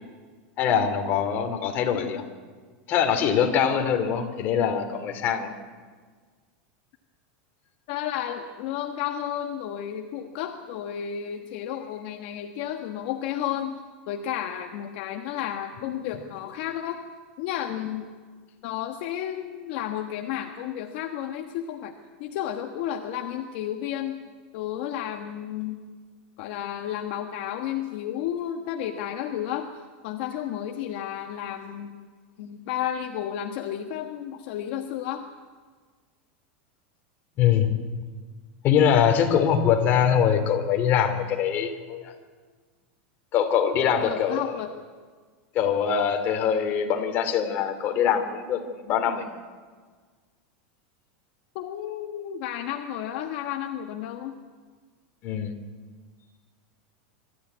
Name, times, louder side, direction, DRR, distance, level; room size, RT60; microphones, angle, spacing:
voice 1, 0.6-2.3 2.9-5.5 37.4-37.7 38.6-42.1 43.3-44.6 45.5-49.3 55.2-55.6, left 8 dB, 35° left, 5 dB, 2.8 m, -23 dB
voice 2, 7.9-17.0 17.4-18.1 18.6-21.9 22.2-24.2 24.5-25.8 26.4-29.7 30.0-32.0 32.4-35.3 43.7-44.7 51.5-54.3, left 10 dB, 55° left, 4 dB, 1.4 m, -32 dB
24.0 x 14.0 x 9.5 m, 1.5 s
supercardioid pair, 150°, 6 cm